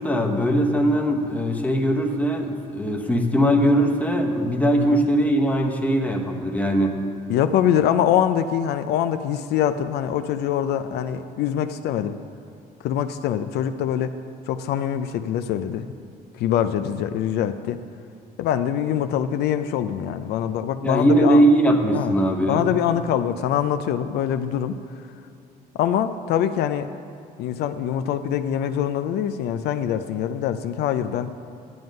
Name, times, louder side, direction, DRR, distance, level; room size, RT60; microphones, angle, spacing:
voice 1, 0.0-7.0 20.8-22.7, right 1 dB, 10° left, 2 dB, 0.9 m, -20 dB
voice 2, 7.3-12.2 12.8-14.1 14.5-15.9 16.3-17.8 18.4-21.4 21.9-22.1 22.5-24.7 25.7-26.9 27.4-31.3, left 10 dB, 75° left, 10 dB, 0.4 m, -24 dB
9.5 x 7.8 x 5.2 m, 2.6 s
cardioid pair, 110°, 17 cm